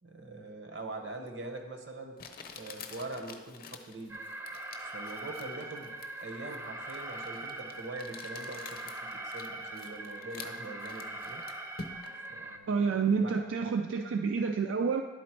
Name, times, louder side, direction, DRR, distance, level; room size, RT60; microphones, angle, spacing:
voice 1, 0.0-2.2 2.5-4.2 4.9-11.4 12.3-13.4, right 2 dB, 65° right, 5 dB, 1.0 m, -43 dB
Crumpling crinkling, 1.3-1.4 2.2-12.3, left 5 dB, 50° left, 0.6 m, -49 dB
Alarm, 4.1-12.6, right 2 dB, 15° right, 0.4 m, -42 dB
voice 2, 12.7-15.0, right 5 dB, 90° right, 5 dB, 0.4 m, -28 dB
11.0 x 4.2 x 4.5 m, 1.4 s
head